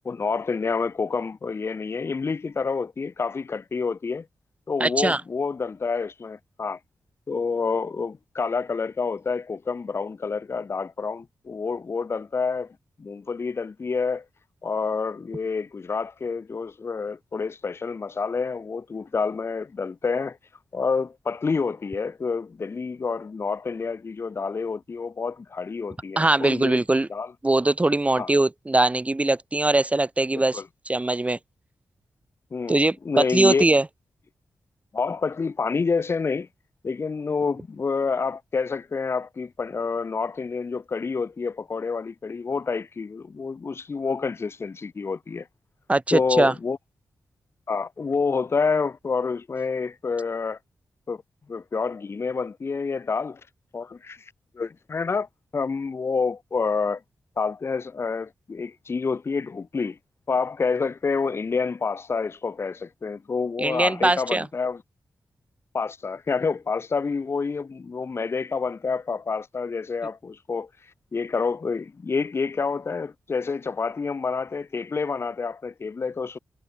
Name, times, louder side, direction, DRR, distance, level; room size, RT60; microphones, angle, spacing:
voice 1, 0.0-4.3 4.7-6.8 7.3-14.2 14.6-20.4 20.7-26.8 27.1-27.3 28.2-28.3 30.3-30.6 32.5-32.8 33.0-33.6 34.9-36.5 36.8-45.5 46.1-46.8 47.7-50.6 51.1-51.2 51.5-53.4 53.7-57.0 57.4-60.0 60.3-64.8 65.7-70.7 71.1-76.4, left 4 dB, 40° left, 0.6 m, -28 dB
voice 2, 4.8-5.2 26.2-27.1 27.4-31.4 32.7-33.8 45.9-46.5 63.6-64.5, right 2 dB, 20° right, 1.5 m, -21 dB
wide cardioid pair, 95°, 7 cm